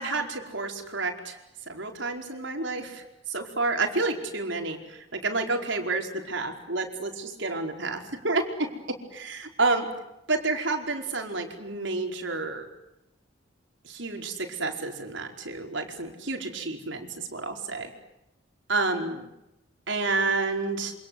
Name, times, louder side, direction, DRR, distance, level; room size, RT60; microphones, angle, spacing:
voice 1, 0.0-1.4 1.7-9.9 10.3-12.7 13.8-17.9 18.7-19.3 19.9-20.9, right 3 dB, 75° right, 3 dB, 4.9 m, -30 dB
28.5 x 26.5 x 8.0 m, 0.89 s
head